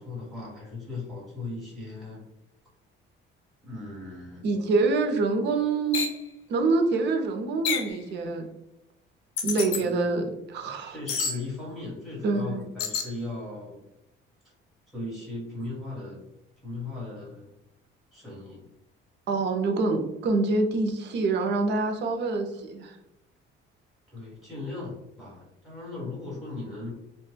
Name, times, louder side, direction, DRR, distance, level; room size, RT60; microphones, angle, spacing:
voice 1, 0.0-2.2 3.6-4.5 9.8-10.3 10.9-13.8 14.9-16.2 16.6-17.5 18.1-18.6 24.1-26.9, left 2 dB, ahead, -8 dB, 1.3 m, -38 dB
voice 2, 4.4-6.1 6.5-8.5 9.4-11.0 12.2-12.6 19.3-23.0, right 3 dB, 55° right, 4 dB, 0.5 m, -26 dB
sound 1, 5.9-6.2 7.7-8.0 9.4-9.8 11.1-11.4 12.8-13.1, left 5 dB, 85° left, 0.6 m, -28 dB
2.9 x 2.1 x 3.2 m, 0.86 s
cardioid pair, 170°, 21 cm